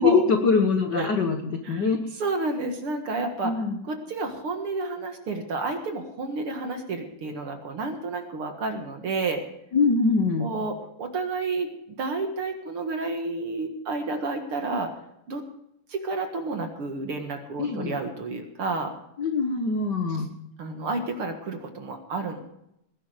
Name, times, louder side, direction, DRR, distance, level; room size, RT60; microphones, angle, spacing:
voice 1, 0.0-2.0 3.4-3.8 9.7-10.5 17.6-18.0 19.2-20.3, left 4 dB, 60° left, 5 dB, 1.1 m, -23 dB
voice 2, 2.2-9.4 10.4-11.7 12.0-14.9 15.3-15.5 15.9-18.9 20.1-20.2 20.6-22.4, right 3 dB, 50° right, 5 dB, 2.2 m, -30 dB
20.0 x 11.0 x 5.0 m, 0.79 s
omnidirectional pair, 3.7 m